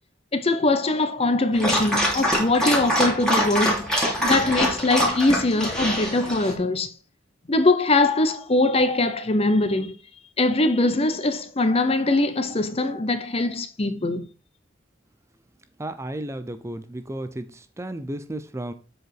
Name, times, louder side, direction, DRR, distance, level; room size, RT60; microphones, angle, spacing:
voice 1, 0.3-3.9 4.2-6.9 7.5-10.0 10.4-14.3, left 2 dB, 30° left, 0.7 m, -22 dB
Dog, 1.5-6.5, equal, 5° left, 2.3 m, -24 dB
voice 2, 15.8-17.5 17.8-18.7, right 1 dB, 15° right, 0.6 m, -33 dB
7.7 x 4.9 x 4.8 m
head